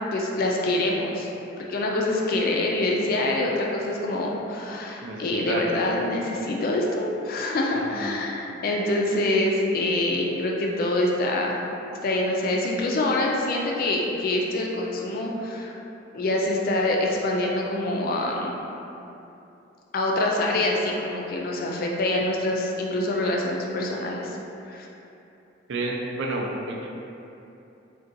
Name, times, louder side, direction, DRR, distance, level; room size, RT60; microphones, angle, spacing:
voice 1, 0.1-1.3 1.6-11.6 12.0-15.7 16.1-18.6 19.9-24.4 24.6-24.9, left 2 dB, 50° left, -1 dB, 0.3 m, -25 dB
voice 2, 5.0-5.6 7.7-8.2 8.6-8.8 25.7-26.9, right 2 dB, 65° right, -1 dB, 0.4 m, -31 dB
3.8 x 2.2 x 2.6 m, 2.9 s
head